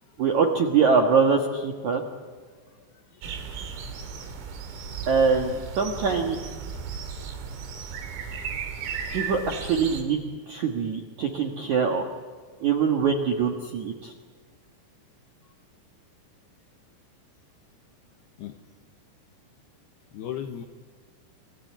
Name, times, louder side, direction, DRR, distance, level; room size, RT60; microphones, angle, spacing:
voice 1, 0.2-2.0 5.1-6.4 9.1-10.2 10.5-12.0 12.6-14.1, right 5 dB, 70° right, 2 dB, 1.8 m, -23 dB
voice 2, 3.1-3.9 18.4-18.5 20.1-20.6, left 10 dB, 75° left, 5 dB, 2.5 m, -38 dB
sound 1, 3.2-10.0, right 6 dB, 85° right, 5.2 m, -35 dB
28.5 x 20.5 x 8.6 m, 1.5 s
omnidirectional pair, 5.8 m